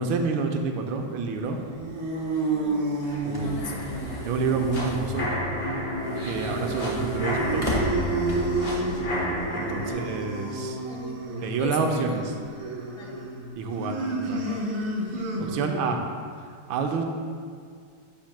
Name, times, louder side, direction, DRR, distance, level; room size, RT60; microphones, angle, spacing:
voice 1, 0.0-1.6 3.2-3.7 4.2-5.3 6.2-7.9 9.5-10.8 11.4-12.2 13.6-14.4 15.4-16.0 16.7-17.0, right 4 dB, 80° right, 3 dB, 1.3 m, -28 dB
sound 1, 1.5-16.0, right 2 dB, 55° right, 0.7 m, -32 dB
sound 2, 2.2-8.7, equal, 50° left, 0.4 m, -36 dB
voice 2, 2.5-2.9 3.4-4.0 9.8-10.3 10.9-12.2 13.0-13.2, left 4 dB, 70° left, 1 dB, 1.4 m, -39 dB
sound 3, 3.6-9.9, equal, 90° left, 2.0 m, -30 dB
7.5 x 2.5 x 5.7 m, 2.2 s
omnidirectional pair, 2.2 m